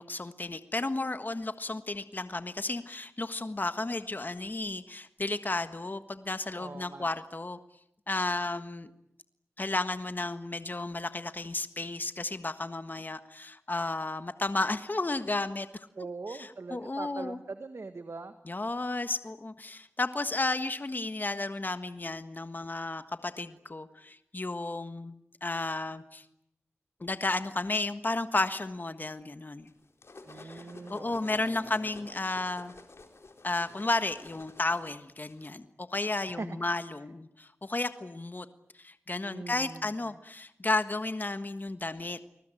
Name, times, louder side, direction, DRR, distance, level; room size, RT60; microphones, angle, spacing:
voice 1, 0.0-7.6 8.1-8.9 9.6-15.9 16.3-17.4 18.4-26.2 27.0-29.7 30.4-30.6 30.9-32.7 33.4-38.5 38.7-42.2, left 2 dB, 40° left, 10 dB, 1.5 m, -33 dB
voice 2, 6.6-7.1 16.0-18.3 30.2-31.7 36.4-36.5 39.3-39.8, right 3 dB, 65° right, 9 dB, 1.6 m, -42 dB
sound 1, 29.7-35.5, left 3 dB, 65° left, 3.9 m, -51 dB
29.5 x 20.5 x 9.1 m, 0.77 s
wide cardioid pair, 55°, 5 cm